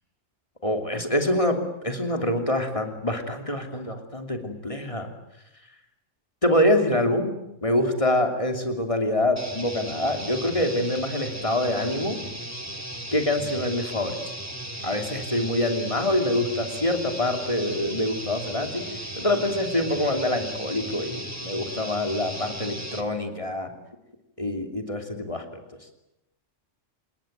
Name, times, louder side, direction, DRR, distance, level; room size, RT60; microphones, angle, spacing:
voice 1, 0.6-5.1 6.4-7.3 7.6-12.2 13.1-14.2 14.8-23.7 24.4-25.4, left 1 dB, 25° left, 5 dB, 3.1 m, -25 dB
sound 1, 9.4-23.1, right 1 dB, 10° right, 2.4 m, -36 dB
27.0 x 21.0 x 9.2 m, 0.86 s
omnidirectional pair, 1.3 m